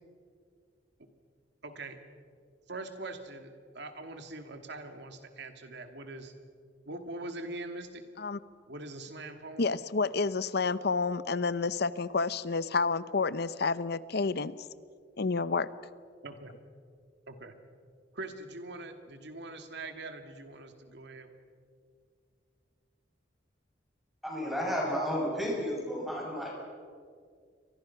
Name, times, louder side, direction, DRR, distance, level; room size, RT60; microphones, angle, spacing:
voice 1, 1.6-2.0 2.7-6.3 6.9-8.0 8.7-9.7 16.2-16.5 17.3-17.5 18.1-21.3, right 2 dB, 65° right, 6 dB, 2.5 m, -42 dB
voice 2, 9.6-14.6 15.2-15.7, left 4 dB, 60° left, 16 dB, 0.8 m, -29 dB
voice 3, 24.2-26.5, equal, ahead, -3 dB, 7.8 m, -32 dB
29.5 x 24.0 x 6.0 m, 2.1 s
head